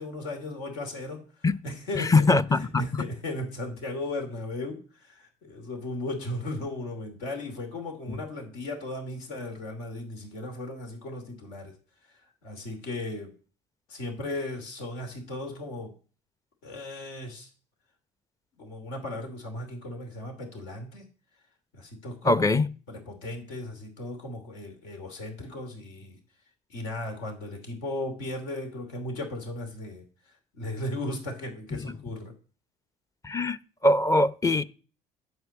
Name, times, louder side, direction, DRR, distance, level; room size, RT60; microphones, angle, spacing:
voice 1, 0.0-11.7 12.1-13.3 13.9-15.9 16.6-17.5 18.6-21.1 21.7-22.4 22.9-26.2 26.7-32.3, left 1 dB, 80° left, 2.8 m, -36 dB
voice 2, 2.0-3.1 22.2-22.6 31.8-31.9 33.2-33.6 33.8-34.6, left 2 dB, 20° left, 0.7 m, -22 dB
7.9 x 7.1 x 8.3 m
hypercardioid pair, 65°, 16 cm